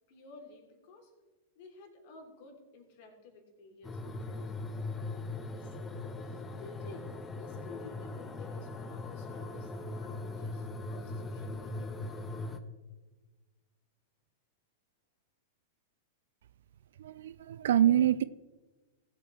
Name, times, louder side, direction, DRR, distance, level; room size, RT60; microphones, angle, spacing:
voice 1, 0.1-1.1 1.5-4.5 5.6-12.4, left 3 dB, 50° left, 2 dB, 3.1 m, -53 dB
sound 1, 3.8-12.6, left 2 dB, 15° left, 0.9 m, -40 dB
voice 2, 17.0-18.2, right 11 dB, 60° right, 17 dB, 0.4 m, -26 dB
19.0 x 8.2 x 3.3 m, 1.3 s
figure-of-eight pair, 95°, 0 cm